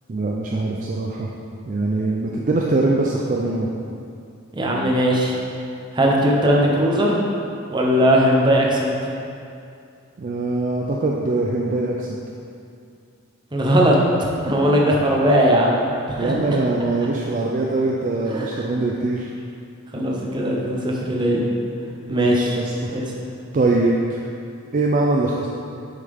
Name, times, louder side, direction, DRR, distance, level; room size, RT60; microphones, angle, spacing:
voice 1, 0.1-1.3 1.7-3.7 10.2-12.2 16.2-19.3 22.1-23.0 23.5-24.3 24.7-25.5, right 2 dB, 40° right, -1 dB, 0.4 m, -22 dB
voice 2, 4.5-5.3 5.9-7.2 7.7-8.9 13.5-14.0 14.4-15.8 16.1-16.4 18.3-18.6 19.9-21.4 22.1-22.5 22.9-23.1, equal, 20° right, -3 dB, 0.8 m, -19 dB
6.4 x 5.6 x 3.5 m, 2.5 s
head